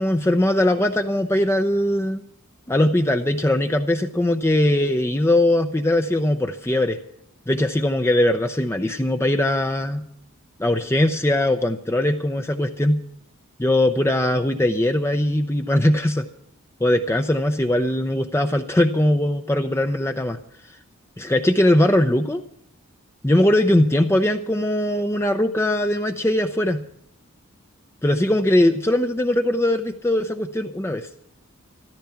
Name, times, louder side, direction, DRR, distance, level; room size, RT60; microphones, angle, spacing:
voice 1, 0.0-2.2 2.7-7.0 7.5-10.0 10.6-13.0 13.6-16.3 16.8-20.4 21.2-22.4 23.2-26.8 28.0-31.1, left 1 dB, 10° left, 6 dB, 0.6 m, -20 dB
14.0 x 13.5 x 5.8 m, 0.71 s
head